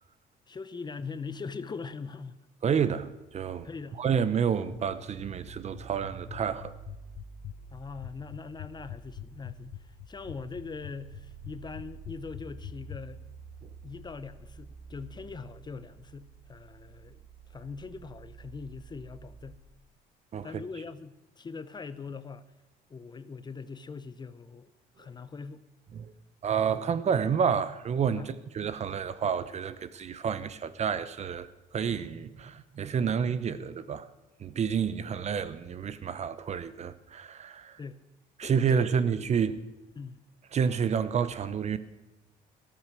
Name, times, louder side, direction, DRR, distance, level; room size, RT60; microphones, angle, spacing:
voice 1, 0.5-2.4 3.6-4.1 7.7-13.2 13.8-17.2 17.5-19.6 20.4-22.4 22.9-24.7 25.0-25.6 28.2-28.3 37.8-38.0 38.4-39.0 40.0-40.2, left 5 dB, 25° left, 0.7 m, -41 dB
voice 2, 2.6-3.7 4.0-6.7 20.3-20.5 25.9-26.1 26.4-31.5 31.7-34.1 34.4-37.8 38.4-39.6 40.5-41.8, right 7 dB, 40° right, 0.9 m, -29 dB
sound 1, 4.6-13.0, left 16 dB, 70° left, 0.5 m, -43 dB
sound 2, 5.1-19.6, right 5 dB, 75° right, 2.9 m, -49 dB
14.0 x 13.5 x 6.2 m
cardioid pair, 110°, 17 cm